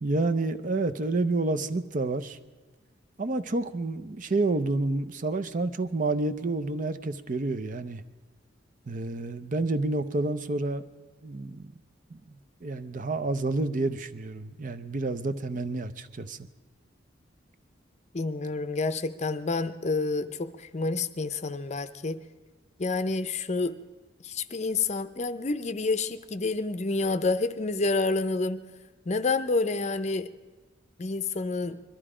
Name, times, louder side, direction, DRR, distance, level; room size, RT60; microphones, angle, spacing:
voice 1, 0.0-2.4 3.2-8.0 8.9-10.8 11.2-11.7 12.1-16.4, right 2 dB, 45° right, 11 dB, 0.6 m, -29 dB
voice 2, 18.1-22.2 22.8-23.7 24.2-28.6 29.1-30.3 31.0-31.8, left 3 dB, 35° left, 12 dB, 0.6 m, -28 dB
21.5 x 13.5 x 4.9 m, 1.3 s
head